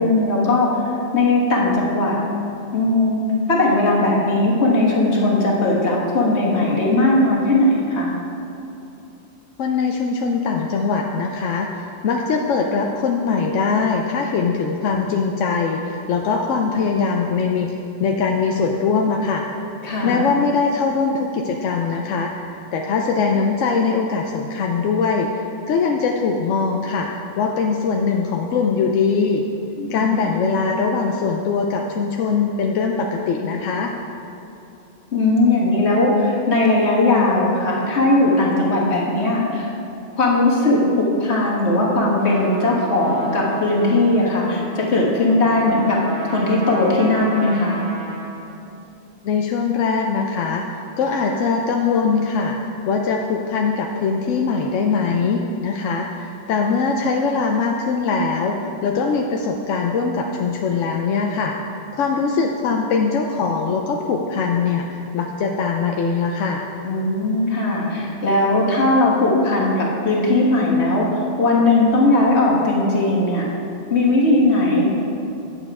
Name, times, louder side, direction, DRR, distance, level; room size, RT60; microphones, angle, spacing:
voice 1, 0.0-2.2 2.7-3.2 3.5-8.1 19.8-20.3 29.8-30.3 35.1-39.7 40.1-46.0 46.3-47.8 66.8-73.4 73.9-74.8, left 2 dB, 65° left, -4 dB, 1.8 m, -18 dB
voice 2, 9.6-17.7 18.0-19.4 20.0-22.4 22.7-27.1 27.4-29.4 29.9-33.9 49.2-52.6 52.8-61.5 61.9-66.6, left 5 dB, 90° left, 1 dB, 0.9 m, -21 dB
Trumpet, 42.2-48.5, right 2 dB, 55° right, 1.6 m, -35 dB
9.0 x 7.1 x 4.7 m, 2.8 s
omnidirectional pair, 1.2 m